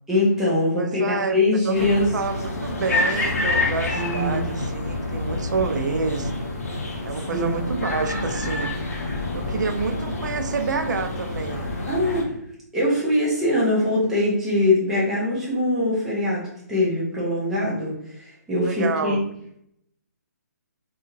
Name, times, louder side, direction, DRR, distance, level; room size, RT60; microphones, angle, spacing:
voice 1, 0.1-2.1 4.0-4.5 7.3-7.5 11.9-12.3 12.7-19.2, left 1 dB, 5° right, -7 dB, 0.4 m, -22 dB
voice 2, 0.8-1.4 1.6-6.3 7.0-8.7 9.3-11.7 18.6-19.2, right 5 dB, 85° right, 8 dB, 0.4 m, -28 dB
sound 1, 1.7-12.2, left 2 dB, 55° left, 0.6 m, -27 dB
2.6 x 2.3 x 2.9 m, 0.75 s
hypercardioid pair, 170°, 10 cm